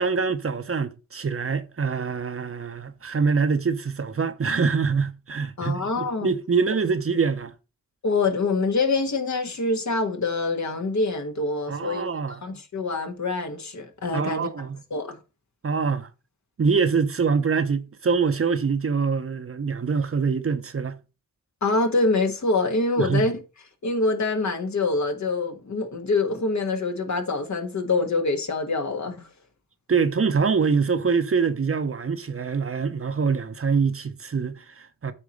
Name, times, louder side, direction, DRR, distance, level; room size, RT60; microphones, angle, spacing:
voice 1, 0.0-7.5 11.7-12.4 14.1-14.8 15.6-16.1 16.6-21.0 23.0-23.3 29.9-35.1, right 5 dB, 40° right, 0.9 m, -24 dB
voice 2, 5.6-6.3 8.0-12.1 12.4-14.5 14.9-15.2 21.6-23.3 23.8-29.3, left 3 dB, 55° left, 1.5 m, -25 dB
8.6 x 2.9 x 6.3 m
cardioid pair, 50°, 33 cm